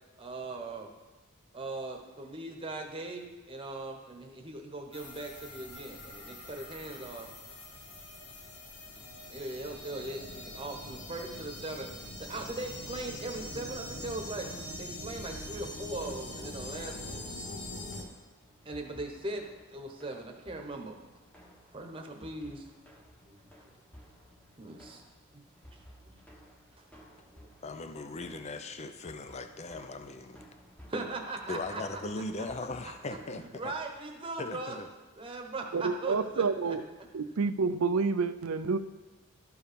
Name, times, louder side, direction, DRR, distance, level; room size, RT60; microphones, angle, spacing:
voice 1, 0.2-0.9 1.5-7.3 9.3-11.9 12.2-14.5 14.8-17.3 18.6-21.0 21.7-22.7 23.3-23.4 24.6-25.0 25.3-25.4 25.7-25.8 26.1-26.2 26.7-26.8 30.9-32.0 33.5-34.8 35.2-36.8, right 2 dB, 25° right, 2 dB, 1.1 m, -39 dB
sound 1, 4.9-18.0, left 1 dB, 85° left, 1.6 m, -43 dB
sound 2, 13.9-33.8, equal, 5° left, 1.2 m, -57 dB
voice 2, 27.6-30.4 31.5-33.7 34.4-34.9, left 2 dB, 30° left, 8 dB, 0.5 m, -39 dB
voice 3, 35.7-36.9 37.1-38.8, right 4 dB, 70° right, 10 dB, 0.5 m, -29 dB
12.5 x 4.7 x 5.2 m, 1.2 s
head